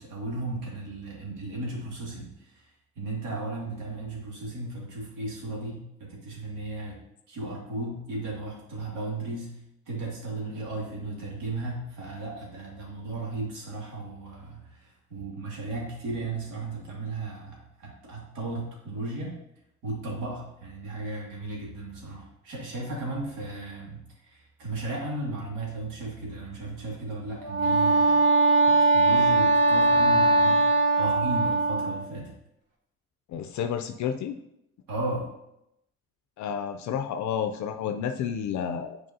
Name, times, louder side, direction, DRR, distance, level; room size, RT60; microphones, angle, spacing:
voice 1, 0.0-2.7 3.0-7.0 7.3-9.5 9.9-19.4 19.8-28.2 28.6-30.7 31.0-32.4 34.9-35.3, right 2 dB, 85° right, -3 dB, 2.2 m, -35 dB
Wind instrument woodwind instrument, 27.4-32.1, right 2 dB, 60° right, 1.6 m, -21 dB
voice 2, 33.3-34.4 36.4-39.0, left 8 dB, 70° left, 8 dB, 0.5 m, -30 dB
7.6 x 4.7 x 2.7 m, 0.82 s
cardioid pair, 90°, 30 cm